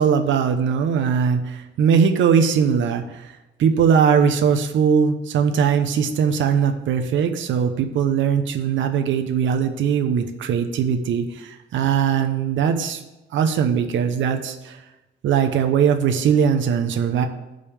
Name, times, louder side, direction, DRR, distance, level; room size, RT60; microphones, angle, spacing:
voice 1, 0.0-13.0 13.3-14.8 15.2-17.3, right 7 dB, 70° right, 5 dB, 0.9 m, -20 dB
15.5 x 5.3 x 3.5 m, 1.0 s
cardioid pair, 90°, 20 cm